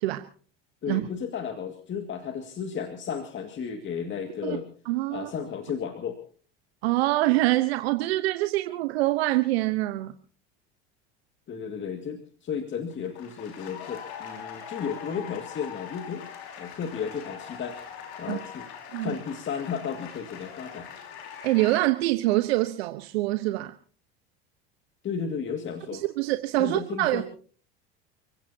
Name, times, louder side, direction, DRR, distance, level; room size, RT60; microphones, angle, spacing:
voice 1, 0.8-4.7 5.1-6.2 11.5-16.2 16.5-17.8 18.2-18.7 19.0-20.9 25.0-26.0 26.6-27.2, left 7 dB, 40° left, 6 dB, 2.2 m, -33 dB
voice 2, 4.9-5.3 6.8-10.1 18.3-18.4 18.9-19.1 21.4-23.7 25.9-27.2, right 18 dB, 80° right, 9 dB, 1.1 m, -25 dB
sound 1, 12.9-21.8, left 8 dB, 75° left, 5.3 m, -42 dB
30.0 x 16.5 x 2.8 m, 0.43 s
hypercardioid pair, 90°, 31 cm